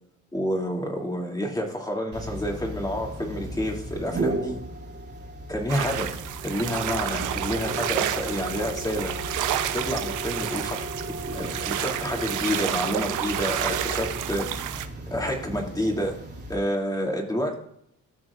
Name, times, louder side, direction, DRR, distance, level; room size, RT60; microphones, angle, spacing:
voice 1, 0.3-4.6 5.5-6.2 6.4-9.1 9.7-10.9 11.3-14.5 15.1-16.2 16.5-17.5, equal, 15° left, 1 dB, 2.6 m, -29 dB
sound 1, 2.1-16.5, right 1 dB, 35° right, 2.5 m, -35 dB
sound 2, 5.7-14.9, right 12 dB, 85° right, 0.7 m, -30 dB
14.5 x 6.2 x 2.5 m, 0.70 s
cardioid pair, 90°, 30 cm